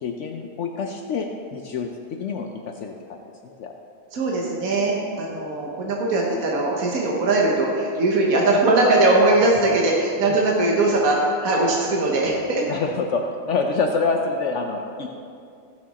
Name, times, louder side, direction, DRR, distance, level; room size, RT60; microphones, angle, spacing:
voice 1, 0.0-3.7 12.7-15.1, left 4 dB, 65° left, 3 dB, 0.9 m, -27 dB
voice 2, 4.1-12.6, right 2 dB, 85° right, -2 dB, 1.5 m, -20 dB
14.5 x 6.3 x 4.2 m, 2.4 s
omnidirectional pair, 1.4 m